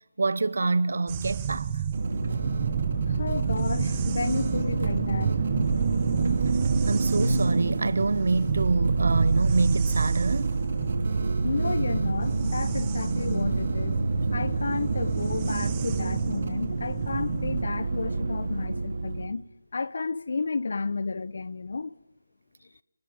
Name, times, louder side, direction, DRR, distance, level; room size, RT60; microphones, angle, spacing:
voice 1, 0.2-1.7 6.9-10.5, right 3 dB, 60° right, 0.9 m, -26 dB
sound 1, 1.1-17.7, right 9 dB, 20° right, 1.3 m, -32 dB
sound 2, 1.9-19.3, right 3 dB, 45° right, 3.3 m, -27 dB
voice 2, 3.1-5.3 11.4-14.0 14.3-19.4 19.7-21.9, left 4 dB, 55° left, 1.2 m, -32 dB
28.5 x 19.5 x 9.2 m
figure-of-eight pair, 165°, 0 cm